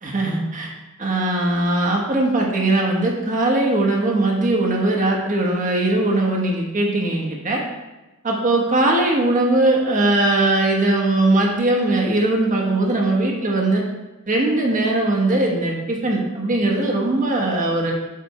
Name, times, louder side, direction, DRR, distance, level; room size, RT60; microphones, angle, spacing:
voice 1, 0.0-0.7 1.0-7.6 8.2-13.8 14.3-17.9, right 2 dB, 35° right, 0 dB, 1.1 m, -20 dB
7.5 x 3.4 x 4.2 m, 1.1 s
head